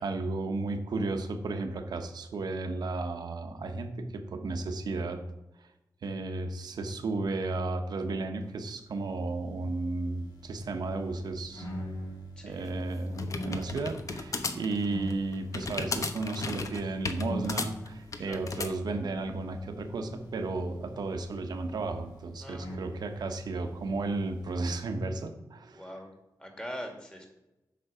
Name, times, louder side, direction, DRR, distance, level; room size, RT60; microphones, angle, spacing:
voice 1, 0.0-5.2 6.0-11.7 12.4-25.9, right 3 dB, 80° right, 6 dB, 1.1 m, -33 dB
sound 1, 9.2-24.6, equal, 90° left, 1.6 m, -44 dB
voice 2, 12.4-12.7 18.3-18.4 22.4-22.7 25.7-26.1 26.4-27.3, equal, 15° left, 2 dB, 2.3 m, -42 dB
sound 2, 12.6-18.7, left 3 dB, 50° left, 0.9 m, -35 dB
9.3 x 6.1 x 5.0 m, 0.97 s
cardioid pair, 85°, 7 cm